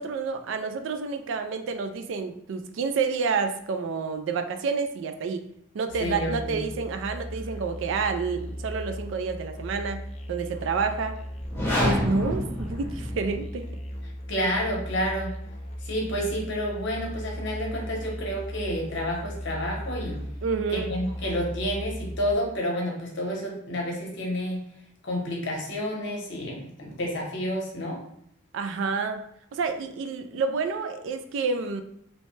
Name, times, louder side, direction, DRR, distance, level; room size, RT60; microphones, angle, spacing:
voice 1, 0.0-5.5 5.7-11.2 11.8-13.7 20.4-20.9 28.5-29.2 29.5-31.8, right 5 dB, 65° right, 8 dB, 0.3 m, -29 dB
Musical instrument, 5.9-22.4, equal, 35° left, 0.3 m, -37 dB
voice 2, 6.0-6.6 14.3-15.3 15.8-20.2 20.7-24.6 25.0-28.0, equal, 60° left, -1 dB, 0.8 m, -30 dB
sound 1, 11.4-13.5, equal, 10° left, 0.7 m, -27 dB
2.8 x 2.1 x 3.1 m, 0.73 s
head